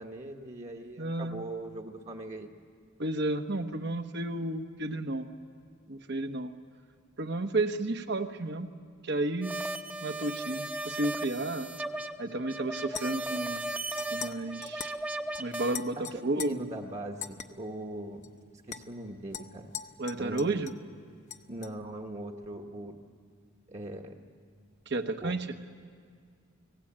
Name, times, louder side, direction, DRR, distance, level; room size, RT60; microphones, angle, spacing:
voice 1, 0.0-2.5 16.0-18.2 18.7-19.7 20.2-20.7 21.5-23.0 23.7-24.2 25.2-25.3, right 1 dB, 35° right, 2 dB, 1.3 m, -40 dB
voice 2, 1.0-1.4 3.0-5.3 5.9-6.5 7.2-8.7 9.0-9.6 10.0-11.7 12.2-13.7 14.1-14.9 15.4-16.0 16.2-16.6 20.0-20.7 24.9-25.5, right 2 dB, 55° right, 7 dB, 1.2 m, -32 dB
sound 1, 9.4-15.8, right 2 dB, 5° right, 0.9 m, -36 dB
sound 2, 12.9-13.4 14.0-14.3 14.6-15.0 15.3-15.5 15.7-16.5 17.2-17.5 18.2-18.3 18.7-18.8 19.3-20.8 21.3-21.7, left 8 dB, 35° left, 0.9 m, -41 dB
29.5 x 18.0 x 8.8 m, 2.1 s
head